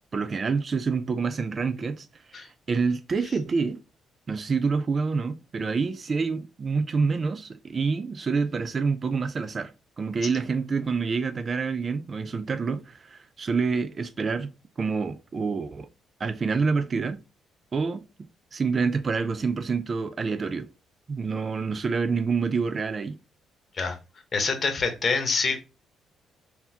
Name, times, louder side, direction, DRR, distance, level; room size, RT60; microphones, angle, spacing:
voice 1, 0.1-3.8 4.3-14.5 14.8-15.9 16.2-17.2 17.7-20.7 21.1-23.2, right 5 dB, 40° right, 0.4 m, -27 dB
voice 2, 24.3-25.6, left 4 dB, 45° left, 1.0 m, -26 dB
3.9 x 2.8 x 2.8 m
cardioid pair, 90°, 0 cm